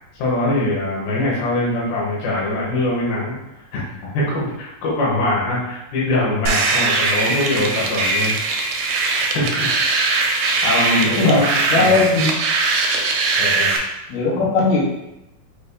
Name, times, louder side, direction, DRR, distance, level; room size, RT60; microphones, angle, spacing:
voice 1, 0.1-8.4 9.2-9.7 10.6-12.0 13.4-13.7, left 2 dB, 85° left, -5 dB, 2.7 m, -22 dB
sound 1, 6.5-13.8, right 3 dB, 80° right, 1.9 m, -20 dB
voice 2, 11.7-12.3 14.1-14.8, left 3 dB, 65° left, -5 dB, 2.0 m, -17 dB
6.2 x 2.6 x 2.6 m, 0.92 s
omnidirectional pair, 3.7 m